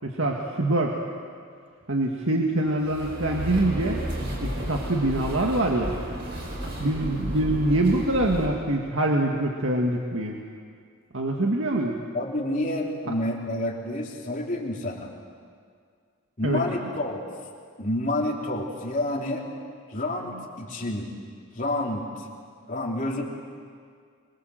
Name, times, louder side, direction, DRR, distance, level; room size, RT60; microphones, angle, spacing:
voice 1, 0.0-1.0 1.9-4.0 4.4-6.0 6.8-10.4 11.1-11.9 16.4-16.6, right 1 dB, 70° right, 0 dB, 1.9 m, -24 dB
sound 1, 2.7-8.5, right 1 dB, 55° right, 5.6 m, -33 dB
voice 2, 12.1-15.1 16.4-17.2 17.8-19.4 19.9-21.1 21.5-22.3 22.7-23.2, left 1 dB, 40° left, -1 dB, 3.4 m, -29 dB
24.5 x 23.5 x 7.8 m, 2.1 s
head